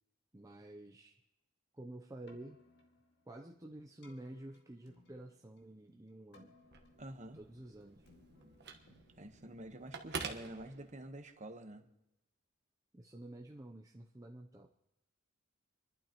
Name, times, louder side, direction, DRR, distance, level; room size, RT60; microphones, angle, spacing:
voice 1, 0.3-1.2 1.7-2.6 3.3-6.6 7.3-8.1 12.9-14.7, right 1 dB, 15° right, 2 dB, 0.6 m, -50 dB
Keyboard (musical), 2.1-10.3, left 2 dB, 55° left, 2.0 m, -66 dB
Telephone, 6.5-11.3, right 4 dB, 55° right, 1.3 m, -48 dB
voice 2, 7.0-7.4 9.2-11.9, right 1 dB, 35° right, 5 dB, 1.2 m, -48 dB
28.5 x 11.5 x 3.0 m, 0.90 s
head